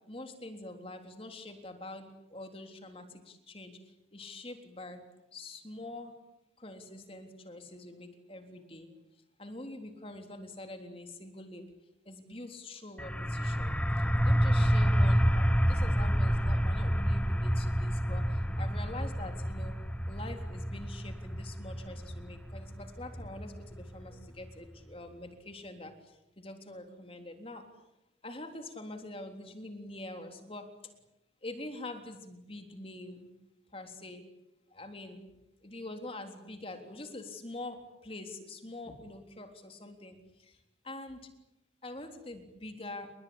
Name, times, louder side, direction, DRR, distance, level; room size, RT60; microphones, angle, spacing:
voice 1, 0.1-5.0 5.3-6.2 6.6-8.9 9.4-11.6 12.1-13.8 14.2-19.8 20.1-27.6 28.2-30.7 31.4-33.3 33.7-34.2 34.7-35.2 35.6-40.6 40.8-41.3 41.8-43.1, left 2 dB, 30° left, 5 dB, 3.6 m, -45 dB
sound 1, 13.0-24.5, equal, 5° left, 1.1 m, -29 dB
30.0 x 21.0 x 8.9 m, 0.91 s
head